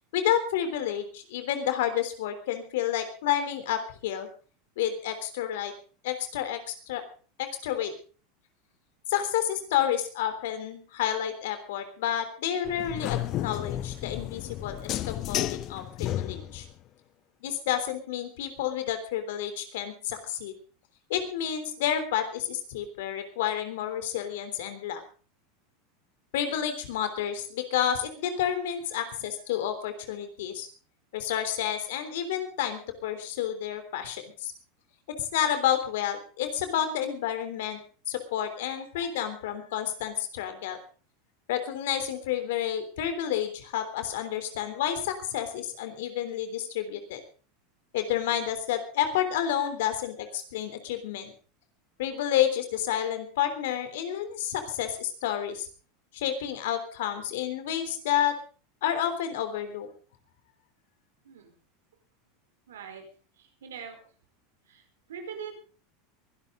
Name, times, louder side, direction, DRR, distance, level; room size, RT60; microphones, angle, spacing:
voice 1, 0.1-4.3 4.8-5.7 6.0-7.0 7.4-7.9 9.1-16.7 17.4-20.5 21.1-25.0 26.3-30.7 31.1-34.5 35.2-37.8 38.1-40.8 41.5-47.2 47.9-51.3 52.0-55.7 56.1-58.3 58.8-59.9, left 10 dB, 75° left, 9 dB, 3.5 m, -30 dB
sound 1, 12.7-16.7, left 13 dB, 45° left, 0.7 m, -32 dB
voice 2, 61.2-61.5 62.7-63.0 63.4-64.0 64.7-64.8 65.1-65.5, right 7 dB, 85° right, 5 dB, 4.6 m, -42 dB
23.0 x 12.0 x 3.9 m, 0.38 s
hypercardioid pair, 100°, 0 cm